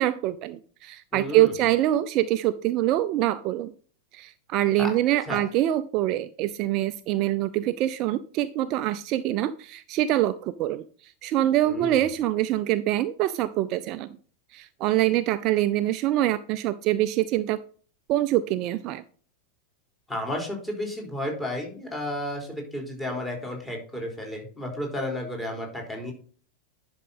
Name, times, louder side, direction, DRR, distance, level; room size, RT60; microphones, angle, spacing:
voice 1, 0.0-3.7 4.1-10.8 11.2-14.1 14.5-17.6 18.1-19.0, right 14 dB, 40° right, 12 dB, 0.5 m, -25 dB
voice 2, 1.1-1.5 4.8-4.9 5.3-5.4 11.6-12.0 20.1-26.1, left 1 dB, 10° left, 0 dB, 4.0 m, -32 dB
11.0 x 6.2 x 4.1 m, 0.43 s
figure-of-eight pair, 90°, 0 cm